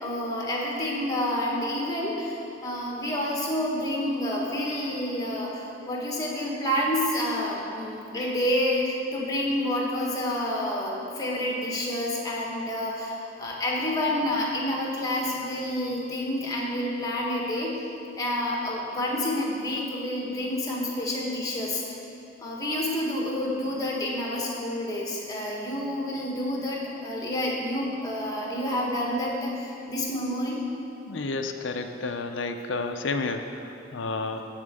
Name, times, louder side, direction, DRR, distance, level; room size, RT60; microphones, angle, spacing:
voice 1, 0.0-2.4 2.6-17.8 18.2-21.8 22.4-30.6, left 1 dB, 20° left, -2 dB, 1.3 m, -29 dB
voice 2, 31.1-34.4, left 3 dB, 65° left, 6 dB, 0.6 m, -31 dB
9.8 x 4.4 x 7.5 m, 2.9 s
head